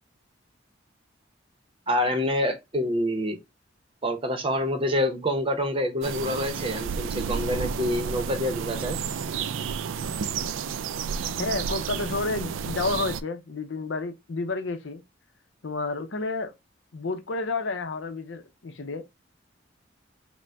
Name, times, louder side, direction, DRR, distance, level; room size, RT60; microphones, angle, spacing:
voice 1, 1.9-3.4 4.0-9.0, left 1 dB, 30° right, 0.8 m, -27 dB
sound 1, 6.0-13.2, right 6 dB, 85° right, 0.4 m, -31 dB
voice 2, 11.4-15.0 15.6-16.5 16.9-19.0, left 3 dB, 70° left, 0.6 m, -30 dB
5.1 x 2.1 x 3.3 m
head